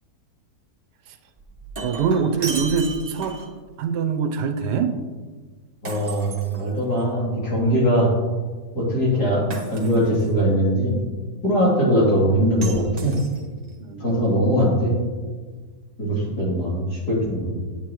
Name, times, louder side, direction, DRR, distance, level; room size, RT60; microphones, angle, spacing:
Shatter, 1.4-3.6 5.8-7.1 9.5-10.3 12.6-13.7, right 3 dB, 30° right, 0.8 m, -35 dB
voice 1, 1.8-3.4 3.8-5.0 13.8-14.2, right 6 dB, 80° right, 7 dB, 1.3 m, -24 dB
voice 2, 5.8-8.1 8.7-9.4 9.7-11.0 11.4-13.1 14.0-14.9 16.0-17.6, equal, 65° left, -6 dB, 3.4 m, -21 dB
9.0 x 8.9 x 3.0 m, 1.4 s
omnidirectional pair, 1.8 m